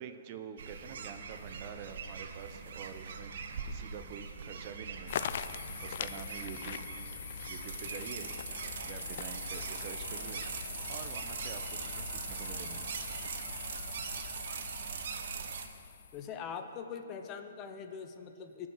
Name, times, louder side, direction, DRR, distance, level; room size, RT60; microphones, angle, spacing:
voice 1, 0.0-3.3 3.6-6.8 7.5-8.3 8.6-10.4 10.9-12.9, right 8 dB, 40° right, 9 dB, 0.7 m, -47 dB
sound 1, 0.6-15.7, right 6 dB, 60° right, 1.0 m, -42 dB
sound 2, 5.1-16.3, left 10 dB, 55° left, 0.4 m, -42 dB
voice 2, 16.1-18.7, left 6 dB, 30° left, 7 dB, 0.7 m, -42 dB
17.0 x 6.2 x 5.7 m, 2.5 s
hypercardioid pair, 145°, 0 cm